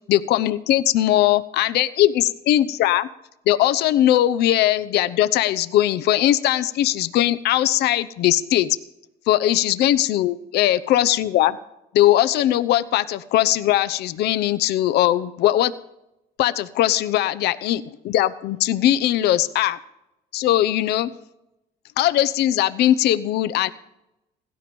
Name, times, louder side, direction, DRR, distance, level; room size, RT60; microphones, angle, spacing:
voice 1, 0.1-3.1 3.5-8.8 9.3-11.6 11.9-15.7 16.4-19.8 20.3-21.1 22.0-23.7, left 13 dB, 75° left, 13 dB, 0.8 m, -20 dB
16.5 x 13.0 x 5.3 m, 0.86 s
cardioid pair, 110°, 17 cm